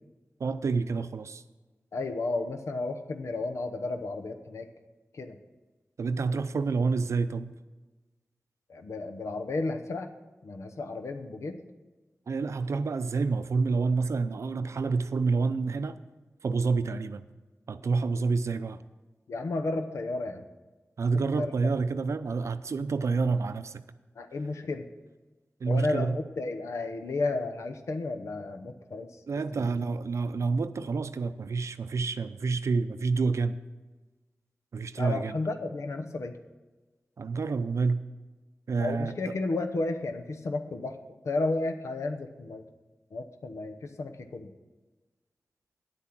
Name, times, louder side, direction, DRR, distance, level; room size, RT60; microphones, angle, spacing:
voice 1, 0.4-1.4 6.0-7.5 12.3-16.0 16.4-17.3 17.7-18.8 21.0-23.8 25.6-26.2 29.3-33.6 34.7-35.4 37.2-38.0 38.7-39.1, right 4 dB, 80° right, 12 dB, 0.5 m, -28 dB
voice 2, 1.9-4.7 5.1-5.4 8.7-10.1 10.4-11.6 19.3-20.4 21.1-21.5 24.2-24.9 25.7-29.1 29.5-29.7 35.0-36.3 38.8-41.0 41.2-42.6 43.1-44.5, left 2 dB, 85° left, 6 dB, 0.9 m, -32 dB
9.9 x 8.4 x 6.0 m, 1.2 s
cardioid pair, 50°, 5 cm